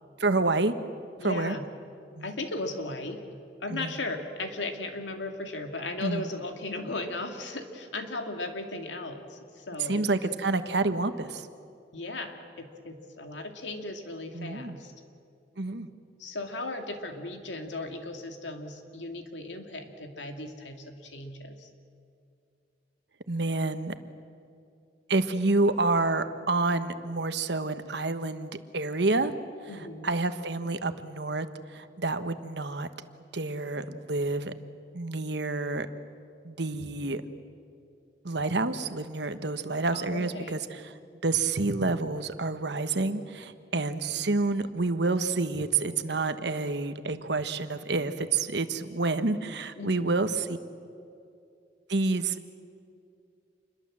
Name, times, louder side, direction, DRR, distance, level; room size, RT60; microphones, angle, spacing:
voice 1, 0.2-0.7 1.2-1.6 2.2-2.3 3.7-4.0 6.0-6.3 9.8-11.5 14.3-14.8 15.6-15.9 23.3-23.9 25.1-29.3 29.7-32.9 33.3-34.5 34.9-35.9 36.4-37.2 38.2-40.9 41.2-50.6 51.9-52.4, right 3 dB, 70° right, 10 dB, 1.3 m, -28 dB
voice 2, 1.2-1.6 2.2-3.2 3.6-10.3 11.9-14.9 16.2-21.7 29.7-30.1 39.9-40.5 43.7-44.3 49.8-50.2, left 2 dB, 90° left, 5 dB, 2.5 m, -37 dB
28.0 x 22.0 x 7.5 m, 2.4 s
head